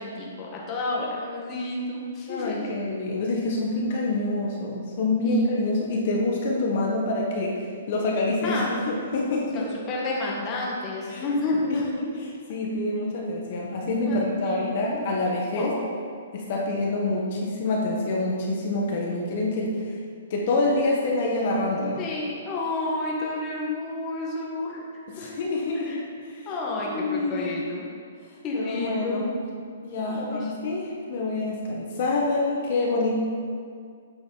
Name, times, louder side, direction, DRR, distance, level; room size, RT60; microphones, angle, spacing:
voice 1, 0.0-2.7 5.2-5.4 8.4-8.7 9.5-12.0 14.1-15.0 15.5-15.8 22.0-24.8 25.2-25.3 25.7-26.0 26.4-27.9 28.4-29.3 30.0-30.5, left 2 dB, 20° left, -4 dB, 1.4 m, -30 dB
voice 2, 2.3-7.5 7.9-9.7 11.1-11.3 11.7-12.1 12.5-15.7 16.3-20.0 20.3-22.1 25.2-26.5 26.8-27.4 28.5-29.2 29.8-33.1, left 2 dB, 45° left, -2 dB, 1.2 m, -26 dB
8.9 x 7.0 x 3.9 m, 2.1 s
hypercardioid pair, 160°, 0 cm